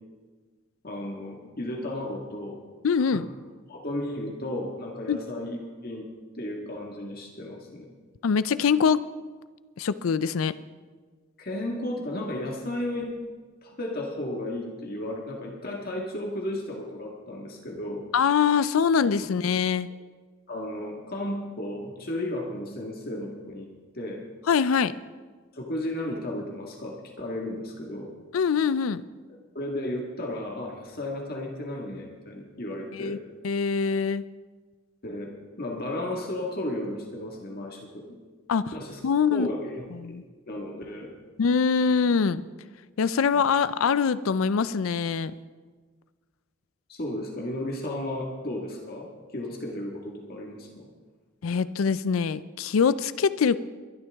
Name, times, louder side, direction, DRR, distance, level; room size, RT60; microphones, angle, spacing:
voice 1, 0.8-2.6 3.1-3.2 3.7-6.1 6.3-7.9 11.4-13.1 13.6-18.0 20.5-23.7 23.9-24.2 25.5-28.1 29.3-33.2 35.0-35.3 35.6-38.2 38.7-39.0 39.3-39.9 40.5-41.1 43.3-43.4 46.9-50.9, left 1 dB, 50° left, 0 dB, 1.7 m, -34 dB
voice 2, 2.8-3.2 5.1-5.2 8.2-9.1 9.8-10.5 18.1-19.9 24.5-24.9 28.3-29.0 32.9-33.2 33.4-34.2 38.5-38.7 39.0-39.5 40.0-40.2 41.4-42.4 43.0-45.3 51.4-53.6, left 6 dB, 85° left, 16 dB, 0.4 m, -23 dB
22.0 x 12.0 x 3.5 m, 1.4 s
head